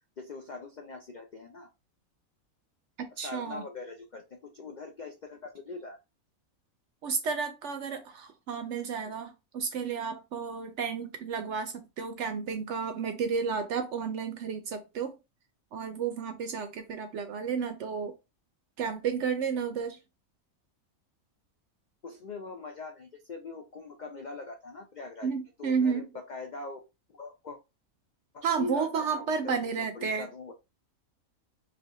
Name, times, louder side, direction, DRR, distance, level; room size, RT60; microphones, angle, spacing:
voice 1, 0.2-1.7 3.1-6.0 9.0-9.1 22.0-25.3 25.6-26.8 27.1-27.6 28.3-30.5, left 3 dB, 75° left, 0.4 m, -42 dB
voice 2, 3.0-3.6 7.0-15.1 15.7-18.1 18.8-20.0 25.2-26.1 28.4-30.3, right 6 dB, 65° right, 0.8 m, -32 dB
4.9 x 2.4 x 3.0 m
omnidirectional pair, 1.5 m